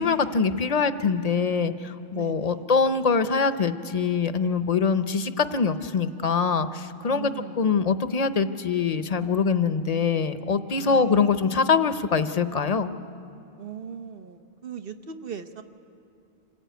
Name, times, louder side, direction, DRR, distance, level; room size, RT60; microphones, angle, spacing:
voice 1, 0.0-7.3 7.6-12.9, left 5 dB, 40° left, 11 dB, 0.8 m, -24 dB
voice 2, 2.1-2.7 7.0-7.7 10.7-11.3 13.6-15.6, right 7 dB, 65° right, 8 dB, 1.2 m, -39 dB
26.5 x 15.0 x 9.3 m, 2.7 s
omnidirectional pair, 1.0 m